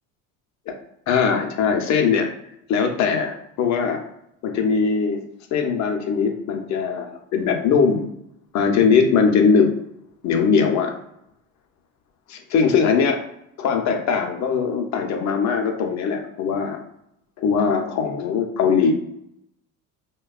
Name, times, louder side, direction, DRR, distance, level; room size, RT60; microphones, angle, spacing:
voice 1, 1.1-2.3 2.7-4.0 4.4-5.2 5.5-8.1 8.5-9.7 10.2-10.9 12.3-13.3 13.6-16.8 17.4-18.9, left 5 dB, 45° left, 4 dB, 0.6 m, -20 dB
2.7 x 2.2 x 2.3 m, 0.76 s
supercardioid pair, 110°, 40 cm